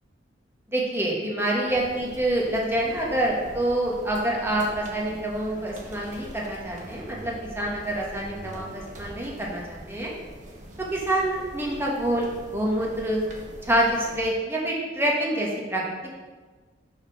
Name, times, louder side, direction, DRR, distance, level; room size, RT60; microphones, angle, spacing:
voice 1, 0.7-10.1 10.9-13.2 13.6-15.8, right 1 dB, 15° right, -3 dB, 1.1 m, -26 dB
sound 1, 1.7-14.2, right 1 dB, 45° right, 1.0 m, -43 dB
5.2 x 4.2 x 5.7 m, 1.4 s
head